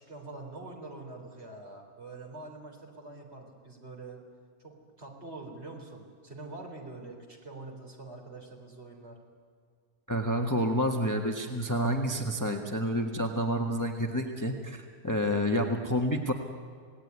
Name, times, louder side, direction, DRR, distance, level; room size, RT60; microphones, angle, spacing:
voice 1, 0.0-4.2 4.6-9.2, right 2 dB, 45° right, 1 dB, 4.3 m, -45 dB
voice 2, 10.1-16.3, equal, 15° left, 3 dB, 1.5 m, -29 dB
28.0 x 18.0 x 9.7 m, 2.1 s
omnidirectional pair, 1.5 m